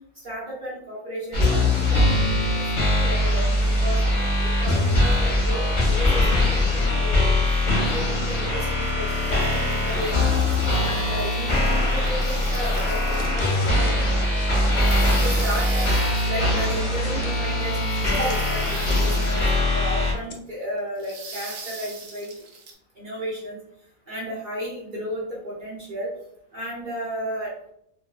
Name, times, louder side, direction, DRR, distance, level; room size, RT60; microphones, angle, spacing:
voice 1, 0.2-7.4 7.9-10.4 10.8-14.1 15.0-22.4 23.0-23.6 24.1-26.1 26.5-27.7, right 1 dB, 50° right, -6 dB, 0.6 m, -33 dB
sound 1, 1.3-20.1, left 1 dB, 40° left, 0.8 m, -22 dB
sound 2, 9.1-13.3 14.5-16.8 17.6-19.6 20.3-20.4 21.0-22.7, right 4 dB, 80° right, 1.1 m, -41 dB
sound 3, 13.0-18.3 18.9-19.0 19.4-19.5 19.8-20.3, left 3 dB, 80° left, 1.0 m, -44 dB
2.7 x 2.6 x 2.3 m, 0.73 s
omnidirectional pair, 1.4 m